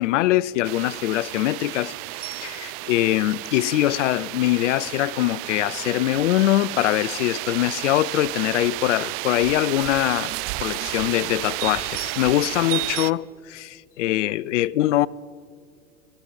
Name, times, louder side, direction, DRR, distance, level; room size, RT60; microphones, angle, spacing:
voice 1, 0.0-1.9 2.2-10.3 10.6-15.1, left 15 dB, 70° left, 0.5 m, -23 dB
sound 1, 0.6-13.1, right 21 dB, 40° right, 0.4 m, -32 dB
27.5 x 13.0 x 4.0 m
hypercardioid pair, 90°, 37 cm